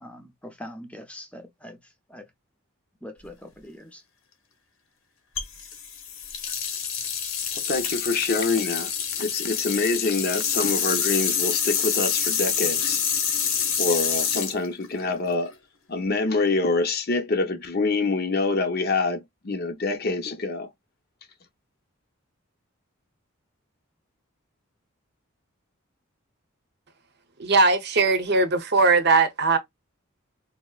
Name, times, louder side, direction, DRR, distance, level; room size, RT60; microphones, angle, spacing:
voice 1, 0.0-1.8 2.1-2.2 3.0-4.0, left 1 dB, 5° left, 0.7 m, -42 dB
sound 1, 5.4-15.5, left 7 dB, 75° left, 1.1 m, -27 dB
voice 2, 7.7-8.9 9.2-13.0 13.8-15.5 15.9-20.7, left 3 dB, 50° left, 0.7 m, -25 dB
voice 3, 27.4-29.6, right 3 dB, 50° right, 0.7 m, -20 dB
4.3 x 2.7 x 2.3 m
head